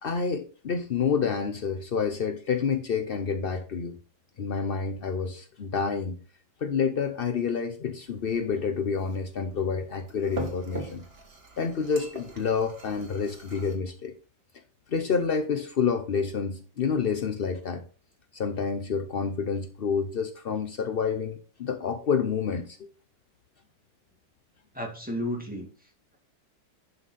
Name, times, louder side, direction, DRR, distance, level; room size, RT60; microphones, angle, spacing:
voice 1, 0.0-4.0 4.4-6.2 6.6-11.0 11.6-14.1 14.9-17.8 18.3-22.8, left 6 dB, 80° left, 0.5 m, -28 dB
sound 1, 8.0-13.8, right 3 dB, 30° right, 1.9 m, -43 dB
voice 2, 24.7-26.2, left 1 dB, 5° right, 2.3 m, -34 dB
11.5 x 5.6 x 4.1 m
omnidirectional pair, 2.1 m